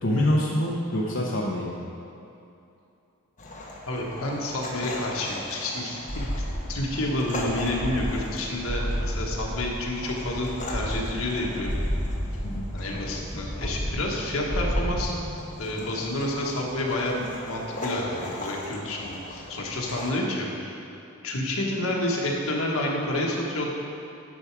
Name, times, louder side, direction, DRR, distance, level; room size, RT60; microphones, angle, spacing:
voice 1, 0.0-1.8 12.4-12.7, left 1 dB, 60° left, -4 dB, 0.9 m, -25 dB
sound 1, 3.4-20.1, left 1 dB, 35° left, 1.3 m, -39 dB
voice 2, 3.9-6.0 6.4-11.7 12.7-15.2 15.6-20.8 21.2-23.7, left 1 dB, 80° left, -2 dB, 1.5 m, -29 dB
sound 2, 6.1-15.1, equal, 80° right, 1.6 m, -32 dB
10.5 x 6.0 x 4.7 m, 2.7 s
head